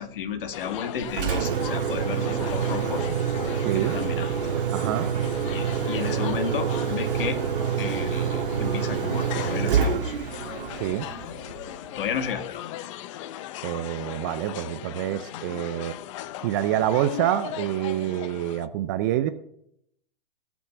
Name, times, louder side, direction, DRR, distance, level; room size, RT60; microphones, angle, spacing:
voice 1, 0.0-3.1 3.7-4.3 5.5-7.4 7.8-10.1 12.0-12.6, left 7 dB, 65° left, 9 dB, 1.6 m, -33 dB
sound 1, 0.5-18.7, left 13 dB, 35° left, 0.5 m, -38 dB
Engine, 1.0-12.0, right 7 dB, 65° right, 1.5 m, -27 dB
voice 2, 3.6-4.0 4.7-5.1 10.8-11.1 13.6-15.9 16.4-19.3, right 12 dB, 20° right, 11 dB, 0.3 m, -26 dB
17.5 x 6.1 x 5.8 m, 0.75 s
hypercardioid pair, 140°, 29 cm